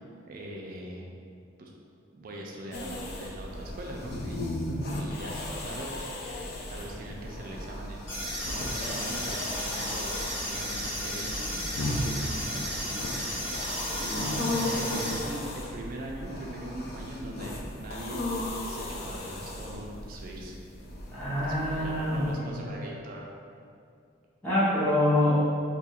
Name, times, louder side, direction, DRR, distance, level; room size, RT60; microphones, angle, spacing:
voice 1, 0.3-1.1 1.6-1.7 2.1-4.4 4.9-8.0 8.5-13.7 14.0-18.2 18.7-20.6 21.4-23.3, right 1 dB, 45° right, -1 dB, 0.4 m, -41 dB
sound 1, 2.7-22.3, left 1 dB, 50° left, 0.4 m, -36 dB
voice 2, 4.7-5.0 14.2-15.2 21.1-22.5 22.8-22.9 24.4-25.4, left 1 dB, 10° left, -11 dB, 0.6 m, -27 dB
sound 2, 8.1-15.1, equal, 70° left, 1.1 m, -34 dB
2.8 x 2.3 x 4.2 m, 2.4 s
head